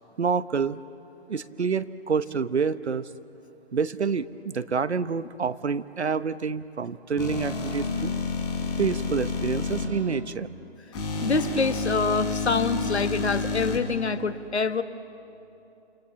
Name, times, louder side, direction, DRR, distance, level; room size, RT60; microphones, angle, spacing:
voice 1, 0.2-0.8 1.3-3.1 3.7-8.1 8.8-10.5, right 5 dB, 80° right, 14 dB, 1.1 m, -27 dB
sound 1, 7.2-9.8 10.9-13.8, left 3 dB, 25° left, 4.7 m, -29 dB
voice 2, 11.2-14.8, left 4 dB, 75° left, 11 dB, 1.4 m, -26 dB
29.0 x 28.5 x 7.2 m, 2.8 s
figure-of-eight pair, 140°, 33 cm